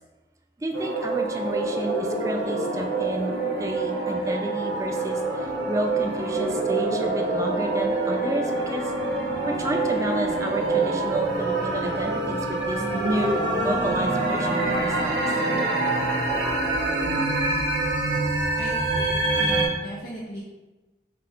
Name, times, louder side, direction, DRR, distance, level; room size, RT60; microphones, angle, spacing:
voice 1, 0.6-8.9 9.5-15.3, right 1 dB, 15° right, 3 dB, 0.4 m, -31 dB
sound 1, 0.7-19.7, right 2 dB, 80° right, 0.8 m, -25 dB
voice 2, 18.6-20.4, equal, 55° left, -6 dB, 0.7 m, -37 dB
5.7 x 2.4 x 3.6 m, 1.2 s
head